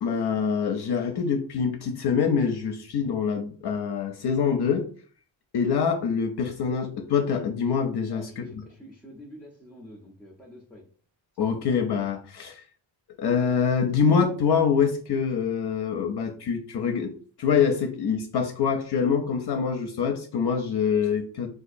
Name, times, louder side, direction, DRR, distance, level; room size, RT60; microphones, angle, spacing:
voice 1, 0.0-4.9 5.5-8.6 11.4-12.6 13.2-17.1 17.4-21.5, left 6 dB, 55° left, 4 dB, 0.5 m, -25 dB
voice 2, 8.0-10.9, equal, 5° left, -2 dB, 0.5 m, -47 dB
3.9 x 2.4 x 2.5 m, 0.43 s
wide cardioid pair, 130°, 47 cm